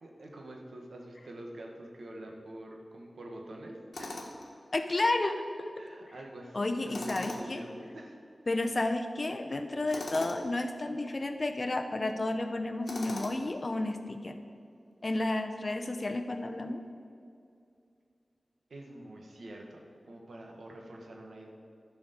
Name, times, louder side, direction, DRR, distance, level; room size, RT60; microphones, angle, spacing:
voice 1, 0.0-4.3 5.8-8.2 18.7-21.5, right 1 dB, 90° right, 1 dB, 1.4 m, -46 dB
Tools, 3.9-4.5 6.9-7.6 9.9-10.4 12.9-13.6, left 2 dB, 75° left, 1.3 m, -40 dB
voice 2, 4.7-5.7 6.5-7.6 8.5-14.4 15.0-16.8, left 2 dB, 45° left, 7 dB, 0.8 m, -31 dB
11.0 x 5.0 x 6.7 m, 2.4 s
wide cardioid pair, 65°, 0 cm